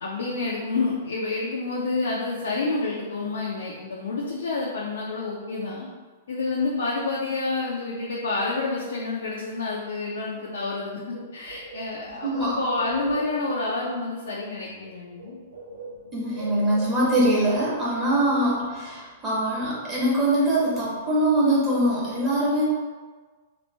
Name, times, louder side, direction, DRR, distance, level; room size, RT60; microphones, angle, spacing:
voice 1, 0.0-5.9 6.3-15.4, left 3 dB, 65° left, -4 dB, 0.5 m, -29 dB
Bird, 10.7-10.8 11.1-13.6 14.7-14.9 15.1-17.6, right 2 dB, 70° right, 0.9 m, -39 dB
voice 2, 12.2-12.6 16.1-22.6, right 1 dB, 20° right, -8 dB, 1.4 m, -23 dB
3.1 x 2.5 x 3.2 m, 1.4 s
figure-of-eight pair, 105°, 0 cm